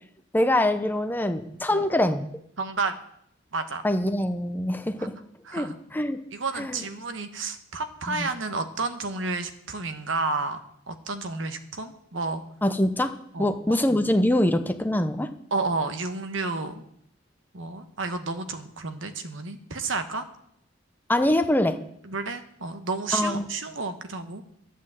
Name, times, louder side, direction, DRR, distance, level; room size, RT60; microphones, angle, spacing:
voice 1, 0.3-2.2 3.8-5.1 5.5-6.2 6.6-6.8 8.1-8.3 12.6-13.1 13.4-15.3 21.1-21.8 23.1-23.5, left 1 dB, 10° left, 8 dB, 0.7 m, -24 dB
voice 2, 2.6-2.9 3.5-3.8 5.5-5.8 6.3-10.6 10.9-12.4 13.3-13.7 15.5-16.8 17.5-20.2 22.0-24.4, right 3 dB, 70° right, 8 dB, 1.3 m, -31 dB
12.0 x 8.5 x 7.6 m, 0.73 s
head